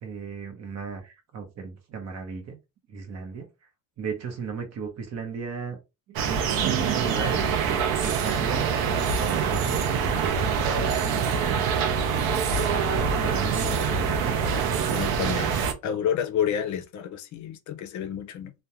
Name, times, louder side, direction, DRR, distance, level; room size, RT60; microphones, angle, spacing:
voice 1, 0.0-2.6 2.9-3.5 4.0-5.8 6.1-8.7 9.1-10.3 11.1-11.7 12.7-14.3, right 6 dB, 50° right, 0.8 m, -35 dB
sound 1, 6.2-15.7, right 6 dB, 90° right, 0.6 m, -25 dB
voice 2, 14.9-18.5, left 9 dB, 55° left, 0.5 m, -30 dB
2.3 x 2.2 x 2.8 m
cardioid pair, 140°, 34 cm